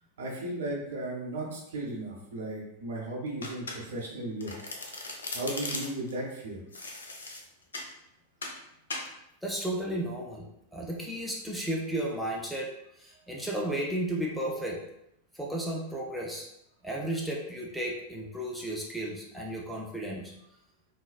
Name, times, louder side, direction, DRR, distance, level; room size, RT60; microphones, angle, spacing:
voice 1, 0.2-4.5 5.0-6.6, right 1 dB, 60° right, -2 dB, 0.8 m, -36 dB
Domestic sounds home sounds, 3.4-4.1 4.4-6.1 6.7-7.9 8.4-8.6 8.9-9.1, left 2 dB, 70° left, 0.4 m, -38 dB
voice 2, 9.4-12.7 13.0-14.8 15.3-16.5 16.8-20.3, right 1 dB, ahead, -3 dB, 0.5 m, -33 dB
3.8 x 2.1 x 2.4 m, 0.80 s
figure-of-eight pair, 90°, 0 cm